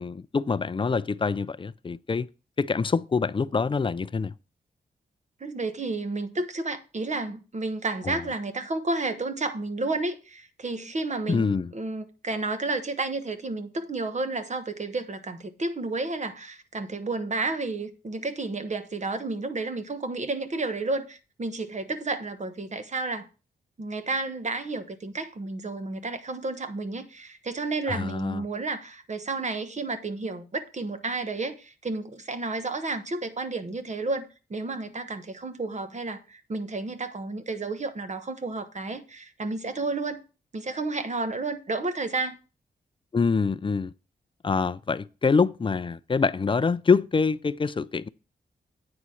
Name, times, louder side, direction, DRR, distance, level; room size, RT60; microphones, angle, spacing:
voice 1, 0.0-2.3 2.6-4.3 8.0-8.2 11.3-11.7 27.9-28.4 43.1-43.9 44.4-48.1, left 5 dB, 30° left, 0.4 m, -25 dB
voice 2, 5.4-23.3 23.8-40.2 40.5-42.4, right 3 dB, 40° right, 1.2 m, -31 dB
8.8 x 4.0 x 6.3 m
cardioid pair, 65°, 18 cm